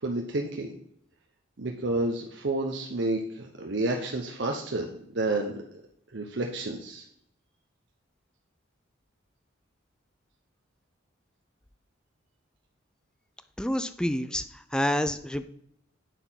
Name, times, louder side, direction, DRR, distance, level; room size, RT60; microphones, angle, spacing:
voice 1, 0.0-0.7 1.6-4.9 5.1-5.6 6.1-7.0, right 2 dB, 60° right, 2 dB, 0.9 m, -30 dB
voice 2, 13.6-15.5, left 1 dB, 5° left, 11 dB, 0.3 m, -28 dB
9.2 x 4.3 x 5.6 m, 0.72 s
head